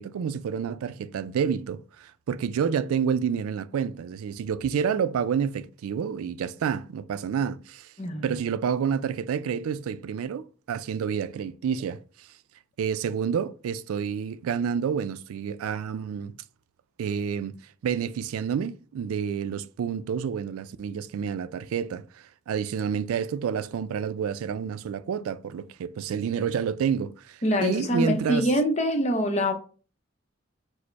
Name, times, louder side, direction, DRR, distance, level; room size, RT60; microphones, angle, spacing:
voice 1, 0.0-7.9 8.2-12.3 12.8-16.3 17.0-22.0 22.5-28.5, right 7 dB, 90° right, 0.3 m, -29 dB
voice 2, 8.0-8.4 27.4-29.5, equal, 30° left, 0.6 m, -24 dB
4.9 x 2.1 x 4.5 m
head